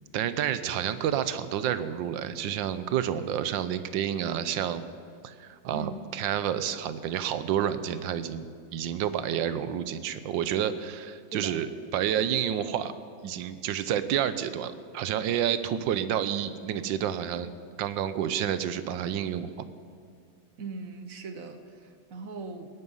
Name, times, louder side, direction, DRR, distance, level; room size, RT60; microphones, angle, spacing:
voice 1, 0.1-4.8 5.2-8.5 8.7-12.9 13.2-17.5 17.8-19.5, right 9 dB, 75° right, 13 dB, 1.4 m, -29 dB
voice 2, 20.6-22.7, right 4 dB, 50° right, 8 dB, 1.2 m, -39 dB
19.5 x 11.0 x 5.5 m, 2.3 s
omnidirectional pair, 2.2 m